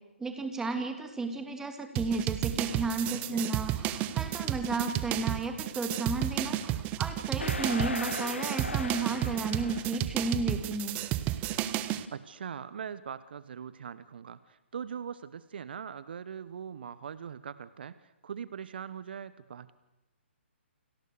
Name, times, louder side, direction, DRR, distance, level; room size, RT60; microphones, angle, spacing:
voice 1, 0.2-11.0, right 3 dB, 5° right, 6 dB, 2.8 m, -33 dB
sound 1, 2.0-12.1, right 13 dB, 20° right, 1.2 m, -32 dB
sound 2, 7.4-10.0, left 3 dB, 75° left, 1.6 m, -37 dB
voice 2, 12.1-19.7, right 7 dB, 55° right, 16 dB, 1.0 m, -41 dB
29.5 x 24.5 x 6.7 m, 0.97 s
figure-of-eight pair, 130°, 7 cm